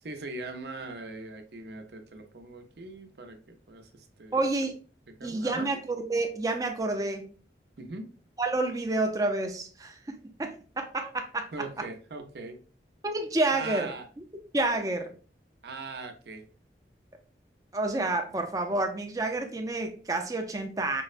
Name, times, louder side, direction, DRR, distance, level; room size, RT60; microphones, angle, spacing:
voice 1, 0.0-4.4 5.2-5.7 7.8-8.1 11.5-12.6 13.5-14.1 15.6-16.5 18.3-18.4, right 3 dB, 75° right, 5 dB, 0.6 m, -40 dB
voice 2, 4.3-4.7 5.2-7.3 8.4-11.5 13.0-13.9 14.5-15.1 17.7-21.0, right 2 dB, 20° right, 4 dB, 0.4 m, -29 dB
5.3 x 2.1 x 2.4 m, 0.38 s
head